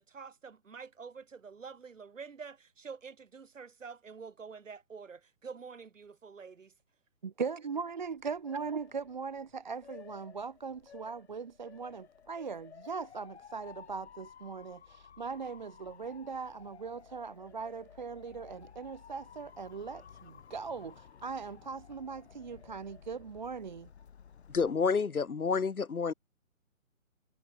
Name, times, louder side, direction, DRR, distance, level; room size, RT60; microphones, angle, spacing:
voice 1, 0.0-6.7, right 5 dB, 60° right, 7.2 m, -47 dB
voice 2, 7.2-23.9, right 5 dB, 35° right, 0.5 m, -40 dB
Motor vehicle (road) / Siren, 7.9-24.7, left 7 dB, 50° left, 2.6 m, -54 dB
voice 3, 24.5-26.1, left 5 dB, 90° left, 1.0 m, -29 dB
figure-of-eight pair, 140°, 42 cm